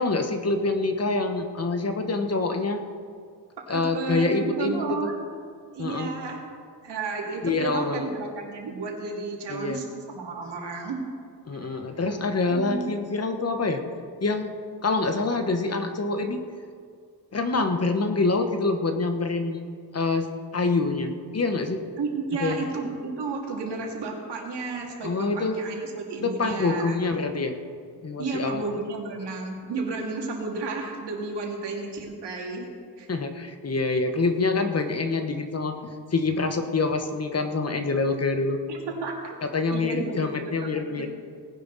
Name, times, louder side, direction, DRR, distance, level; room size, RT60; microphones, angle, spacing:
voice 1, 0.0-2.8 3.7-5.1 5.8-6.1 7.4-8.1 9.5-9.8 11.5-13.8 14.2-14.5 14.8-16.4 17.3-19.6 19.9-21.8 22.4-22.6 25.0-25.6 26.2-27.6 28.0-28.6 33.1-35.8 36.1-38.6 39.4-41.1, left 3 dB, 35° left, 6 dB, 1.2 m, -26 dB
voice 2, 3.7-5.2 5.7-6.4 6.8-11.0 11.6-11.8 12.5-12.9 22.0-27.0 28.2-32.7 33.0-33.1 34.1-34.3 38.7-39.4 39.7-41.0, right 4 dB, 75° right, 0 dB, 2.6 m, -32 dB
18.5 x 10.5 x 4.1 m, 2.1 s
cardioid pair, 95°, 41 cm